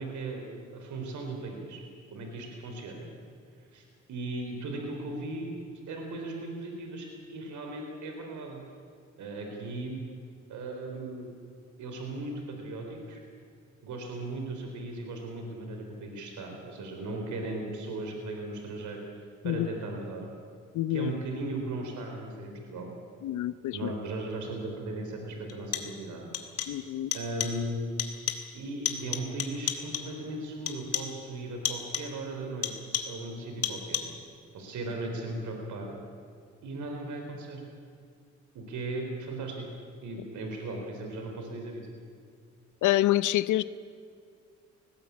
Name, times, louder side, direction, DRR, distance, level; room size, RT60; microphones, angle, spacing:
voice 1, 0.0-1.8 2.1-3.1 3.7-5.6 5.9-8.6 9.2-10.0 10.5-11.3 11.8-13.2 13.8-20.3 20.9-22.9 23.7-26.3 27.1-27.9 28.5-34.1 34.5-35.9 36.6-37.6 38.5-39.7 40.0-41.9, right 2 dB, 75° right, 2 dB, 4.0 m, -37 dB
voice 2, 20.7-21.1 23.2-23.9 26.7-27.1 42.8-43.6, left 15 dB, 80° left, 16 dB, 0.7 m, -27 dB
sound 1, 24.4-24.5 25.5-26.1 26.3-26.9 27.1-27.7 28.0-28.6 28.8-30.2 30.7-31.2 31.6-32.2 32.6-33.3 33.6-34.3, left 8 dB, 55° left, 2.2 m, -34 dB
19.5 x 17.5 x 8.6 m, 2.2 s
cardioid pair, 90°, 30 cm